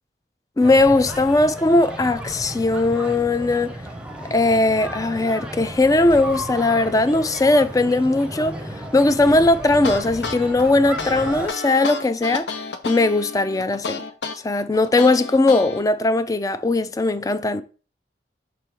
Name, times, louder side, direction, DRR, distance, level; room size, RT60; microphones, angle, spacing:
voice 1, 0.6-3.7 4.3-8.6 8.9-12.5 12.8-14.0 14.4-17.6, left 2 dB, 20° left, 0.3 m, -19 dB
sound 1, 0.6-11.5, right 1 dB, 5° right, 0.7 m, -34 dB
sound 2, 9.7-15.8, left 4 dB, 80° left, 0.7 m, -31 dB
6.0 x 3.4 x 4.5 m
head